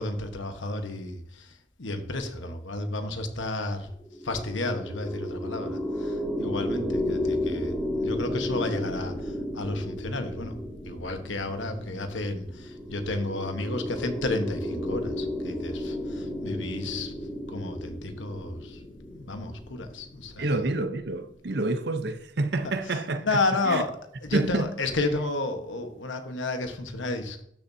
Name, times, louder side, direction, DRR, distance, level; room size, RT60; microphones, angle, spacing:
voice 1, 0.0-1.5 1.8-3.9 4.2-10.5 10.8-17.1 17.5-18.8 19.1-20.5 22.9-23.9 24.2-27.4, left 2 dB, 80° left, 1.3 m, -32 dB
sound 1, 4.0-21.5, left 1 dB, 10° left, 2.0 m, -33 dB
voice 2, 20.4-23.4 23.6-23.8 24.3-24.7, right 2 dB, 60° right, 0.8 m, -28 dB
12.5 x 7.0 x 2.8 m
head